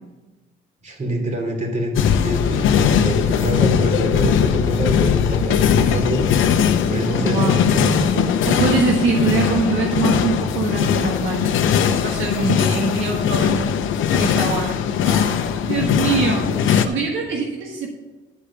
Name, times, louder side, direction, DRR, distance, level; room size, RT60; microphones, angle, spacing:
voice 1, 0.8-1.9 2.2-6.2 6.9-8.3 13.3-13.5 16.4-16.6, right 1 dB, 35° right, 2 dB, 3.2 m, -25 dB
sound 1, 1.9-16.8, left 8 dB, 80° left, 0.8 m, -19 dB
voice 2, 7.1-7.6 8.5-13.8 14.1-14.8 15.0-17.9, right 5 dB, 80° right, 1 dB, 1.4 m, -24 dB
11.5 x 5.1 x 7.2 m, 1.2 s
cardioid pair, 90°, 20 cm